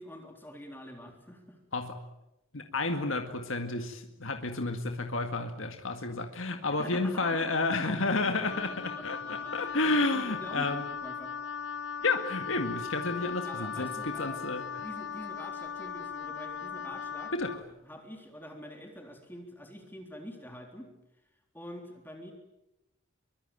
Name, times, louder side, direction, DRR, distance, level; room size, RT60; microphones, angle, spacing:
voice 1, 0.0-1.6 6.7-7.9 8.2-11.4 13.4-14.4 14.8-17.3 17.8-20.9 21.5-22.3, equal, 10° left, 3 dB, 3.6 m, -46 dB
voice 2, 2.5-10.8 12.0-14.6 17.3-17.5, left 3 dB, 75° left, 5 dB, 2.0 m, -31 dB
Wind instrument woodwind instrument, 8.5-17.6, left 7 dB, 55° left, 0.9 m, -38 dB
24.5 x 24.0 x 9.1 m, 0.90 s
head